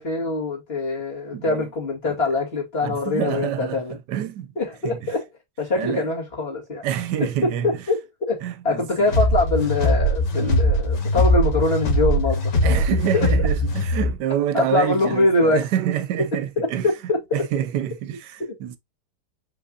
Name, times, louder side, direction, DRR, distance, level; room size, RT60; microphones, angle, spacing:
voice 1, 0.0-4.0 4.6-5.3 5.6-6.8 7.2-12.8 13.1-13.3 14.5-15.6 16.6-17.4 18.4-18.5, left 2 dB, 35° left, 2.5 m, -23 dB
voice 2, 1.3-1.7 2.0-2.2 2.8-4.6 4.8-5.1 5.8-6.1 6.8-7.8 8.4-9.1 10.3-10.6 12.6-16.9 17.3-18.8, right 10 dB, 80° right, 1.2 m, -27 dB
sound 1, 9.1-14.2, left 1 dB, 80° left, 2.3 m, -21 dB
5.2 x 4.1 x 2.4 m
omnidirectional pair, 1.8 m